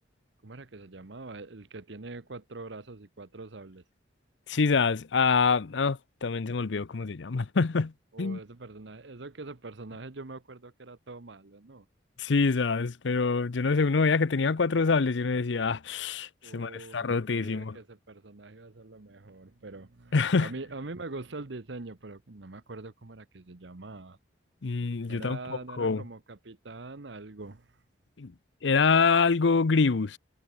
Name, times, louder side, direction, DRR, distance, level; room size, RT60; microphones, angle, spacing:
voice 1, 0.4-3.8 8.1-11.9 16.4-24.2 25.1-27.8, right 3 dB, 70° right, 1.1 m, -43 dB
voice 2, 4.5-7.9 8.2-8.4 12.2-17.8 20.1-20.5 24.6-25.4 25.8-26.0 28.2-28.3 28.6-30.2, left 4 dB, 70° left, 0.6 m, -25 dB
head